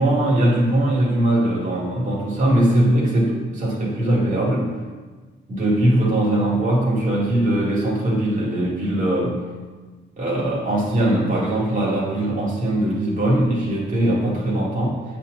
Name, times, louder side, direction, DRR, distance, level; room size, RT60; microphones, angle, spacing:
voice 1, 0.0-4.7 5.5-9.4 10.2-15.0, right 1 dB, 40° right, -5 dB, 2.1 m, -20 dB
8.2 x 4.4 x 6.1 m, 1.4 s
cardioid pair, 90°, 20 cm